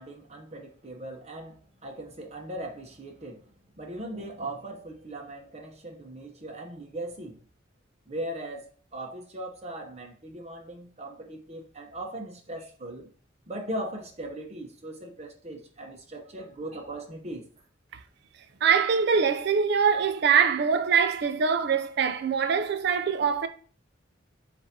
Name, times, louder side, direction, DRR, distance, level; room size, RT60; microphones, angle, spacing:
voice 1, 0.0-3.4 3.8-7.4 8.1-13.1 13.5-17.4, right 1 dB, 35° right, 0.8 m, -39 dB
voice 2, 18.6-23.5, right 6 dB, 60° right, 0.5 m, -23 dB
7.6 x 2.6 x 2.7 m
head